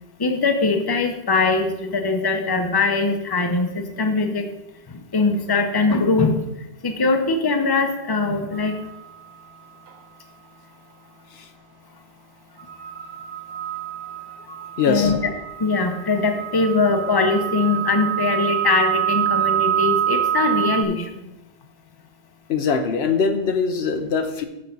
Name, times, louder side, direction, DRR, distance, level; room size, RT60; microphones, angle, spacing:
voice 1, 0.2-4.4 4.9-6.4 6.8-8.8 14.5-14.6 14.9-15.2 15.6-21.3, left 3 dB, 25° left, 5 dB, 0.8 m, -21 dB
sound 1, 8.5-8.9 12.6-20.8, right 10 dB, 70° right, 0.9 m, -26 dB
voice 2, 14.8-15.2 22.5-24.4, left 5 dB, 80° left, 7 dB, 1.0 m, -22 dB
6.9 x 6.5 x 5.3 m, 0.92 s
omnidirectional pair, 1.1 m